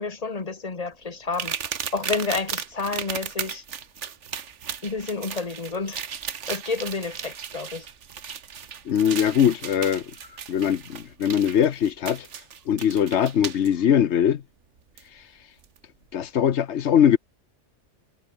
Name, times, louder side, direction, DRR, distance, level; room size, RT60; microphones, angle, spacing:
voice 1, 0.0-1.6 1.9-3.6 4.8-6.0 6.5-7.9, left 4 dB, 30° left, 1.7 m, -30 dB
sound 1, 1.3-13.7 15.0-15.1 15.6-15.8, right 7 dB, 75° right, 1.5 m, -35 dB
voice 2, 8.8-10.1 10.5-12.3 12.7-14.4 16.1-17.2, left 9 dB, 70° left, 1.1 m, -21 dB
omnidirectional pair, 1.2 m